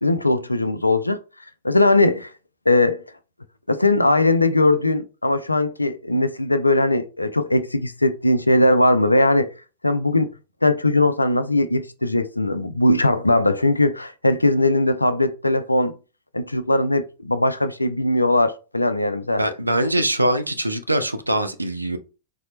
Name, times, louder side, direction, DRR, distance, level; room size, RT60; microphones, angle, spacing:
voice 1, 0.0-1.2 1.6-2.3 2.7-3.0 3.7-9.5 9.8-10.3 10.6-15.9 16.3-19.4, left 2 dB, 85° left, 0.3 m, -19 dB
voice 2, 19.4-22.0, right 1 dB, 85° right, 0.4 m, -22 dB
4.2 x 2.0 x 3.0 m
figure-of-eight pair, 90°, 0 cm